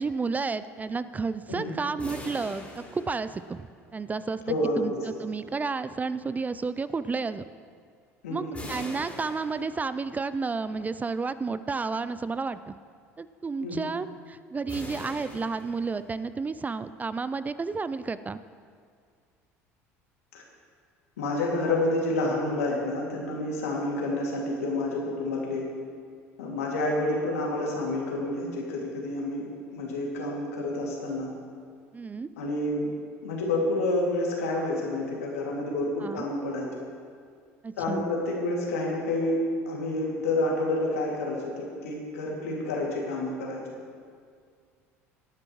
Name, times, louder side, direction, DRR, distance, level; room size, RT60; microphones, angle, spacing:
voice 1, 0.0-2.6 2.9-4.4 4.8-7.4 8.3-12.7 13.2-18.4 31.9-32.3 36.0-36.2 37.6-38.1, right 4 dB, 20° right, 14 dB, 0.4 m, -31 dB
sound 1, 2.0-3.9 8.5-10.2 14.7-16.3, left 1 dB, 15° left, 3.5 m, -42 dB
voice 2, 4.5-5.0 8.2-8.6 13.6-13.9 21.2-25.7 26.4-31.3 32.4-32.9 33.2-36.9 37.8-43.6, left 2 dB, 80° left, -2 dB, 2.3 m, -29 dB
18.0 x 9.7 x 3.1 m, 2.1 s
hypercardioid pair, 65°, 8 cm